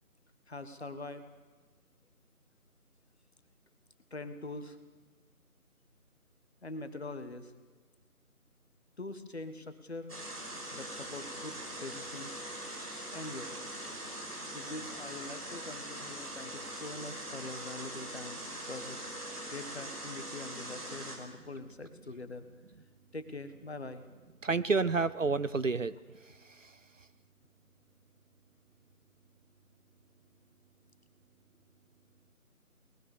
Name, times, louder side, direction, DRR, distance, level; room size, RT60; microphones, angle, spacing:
voice 1, 0.5-1.3 4.1-4.8 6.6-7.5 9.0-10.1 10.7-12.3 13.1-13.6 14.5-19.0 19.5-22.5 23.1-24.0, left 2 dB, 45° left, 1.5 m, -43 dB
sound 1, 10.1-21.2, right 1 dB, 85° right, 5.3 m, -42 dB
voice 2, 24.4-25.9 26.3-26.7, right 4 dB, 55° right, 0.7 m, -30 dB
21.0 x 19.5 x 6.9 m
figure-of-eight pair, 165°, 45 cm